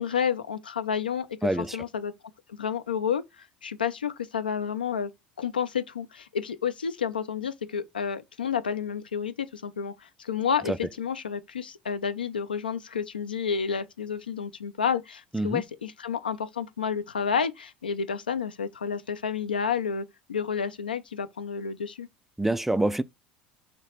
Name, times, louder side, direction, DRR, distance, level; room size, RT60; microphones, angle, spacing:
voice 1, 0.0-1.3 1.6-2.1 2.5-5.1 5.4-22.1, left 7 dB, 90° left, 0.4 m, -30 dB
voice 2, 1.4-1.8 10.7-10.8 15.3-15.6 22.4-23.0, right 1 dB, 5° right, 0.3 m, -26 dB
3.1 x 2.9 x 4.3 m
hypercardioid pair, 70°, 5 cm